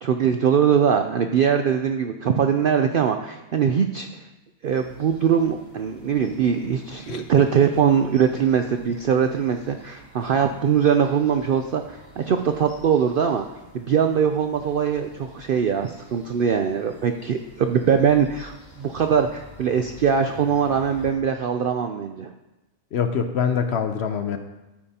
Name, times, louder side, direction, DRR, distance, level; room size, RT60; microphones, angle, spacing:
voice 1, 0.0-4.1 4.6-13.4 13.7-22.3, right 7 dB, 70° right, 6 dB, 0.5 m, -22 dB
sound 1, 4.6-21.1, equal, 85° left, 3.5 m, -49 dB
voice 2, 22.9-24.4, left 7 dB, 60° left, 8 dB, 0.8 m, -24 dB
13.0 x 8.7 x 2.8 m, 1.0 s
omnidirectional pair, 1.4 m